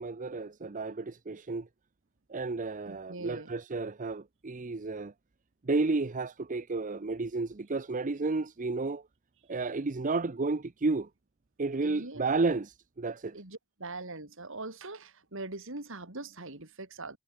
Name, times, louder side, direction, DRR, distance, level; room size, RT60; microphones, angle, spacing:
voice 1, 0.0-1.7 2.3-5.1 5.6-9.1 9.5-11.1 11.6-13.4, right 3 dB, 40° right, 0.7 m, -32 dB
voice 2, 2.9-3.5 11.8-12.3 13.3-17.2, right 2 dB, 65° right, 3.8 m, -42 dB
head